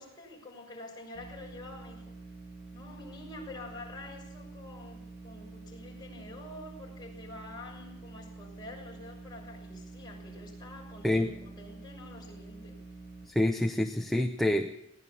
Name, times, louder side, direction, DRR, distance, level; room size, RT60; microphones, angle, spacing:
voice 1, 0.0-2.1 2.7-12.8, left 2 dB, 20° left, -2 dB, 6.5 m, -47 dB
sound 1, 1.1-13.2, right 3 dB, 60° right, 5.3 m, -47 dB
voice 2, 13.3-14.8, left 1 dB, ahead, 4 dB, 0.8 m, -27 dB
21.5 x 17.5 x 7.1 m, 0.81 s
head